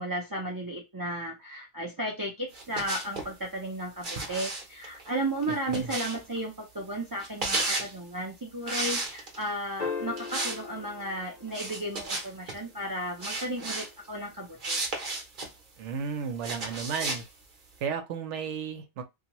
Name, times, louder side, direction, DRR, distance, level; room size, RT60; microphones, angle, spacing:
voice 1, 0.0-14.8, right 1 dB, 30° right, 0.4 m, -34 dB
sound 1, 2.5-3.3 4.0-6.4 7.2-7.9 8.7-9.5 10.2-10.6 10.9-11.0 11.5-12.6 13.2-13.9 14.6-15.5 16.4-17.2, right 2 dB, 45° right, 0.9 m, -33 dB
voice 2, 5.5-6.0 15.8-17.2 17.8-19.0, right 6 dB, 75° right, 0.9 m, -34 dB
sound 2, 9.8-12.3 14.5-14.6, left 5 dB, 55° left, 0.4 m, -38 dB
2.8 x 2.3 x 2.9 m
omnidirectional pair, 1.3 m